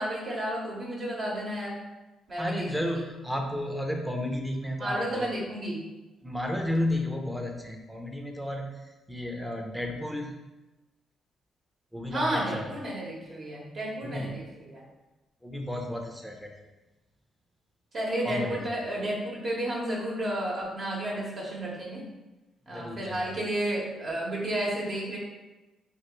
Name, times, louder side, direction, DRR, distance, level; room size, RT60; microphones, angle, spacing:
voice 1, 0.0-1.8 2.3-3.0 4.8-5.8 12.1-14.8 17.9-22.0 22.7-25.2, right 1 dB, 45° right, -4 dB, 1.2 m, -32 dB
voice 2, 2.4-5.3 6.2-8.7 9.1-10.3 11.9-12.7 14.0-14.4 15.4-16.5 18.2-18.6 22.7-23.3, left 1 dB, 5° right, 2 dB, 0.6 m, -32 dB
4.8 x 2.5 x 3.0 m, 1.1 s
cardioid pair, 90°, 0 cm